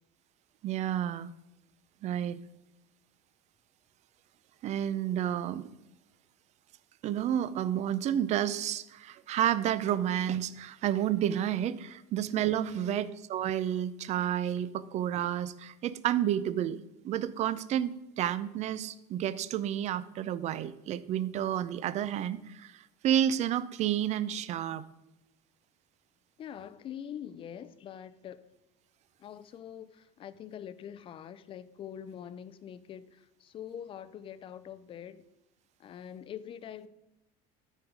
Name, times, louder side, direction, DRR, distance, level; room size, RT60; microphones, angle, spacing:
voice 1, 0.6-1.3 2.0-2.4 4.6-5.6 7.0-16.8 17.0-22.7 23.0-24.8, right 10 dB, 40° right, 0.5 m, -30 dB
voice 2, 12.7-13.0 26.4-28.5 29.2-35.2 35.8-36.9, left 9 dB, 30° left, 0.5 m, -44 dB
13.0 x 4.7 x 5.1 m
cardioid pair, 150°, 18 cm